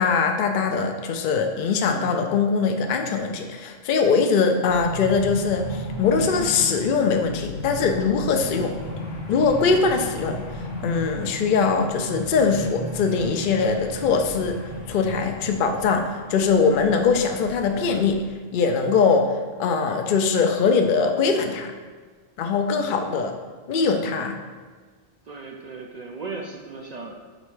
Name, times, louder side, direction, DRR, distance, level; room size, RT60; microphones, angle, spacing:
voice 1, 0.0-8.7 9.3-10.4 10.8-14.6 14.9-18.2 18.5-21.7 22.4-23.3 23.7-24.4, left 5 dB, 60° left, 4 dB, 0.6 m, -22 dB
sound 1, 4.7-18.2, left 1 dB, 45° left, 1.0 m, -35 dB
voice 2, 25.3-27.3, right 4 dB, 60° right, 1 dB, 0.4 m, -37 dB
5.2 x 4.2 x 4.7 m, 1.4 s
omnidirectional pair, 1.3 m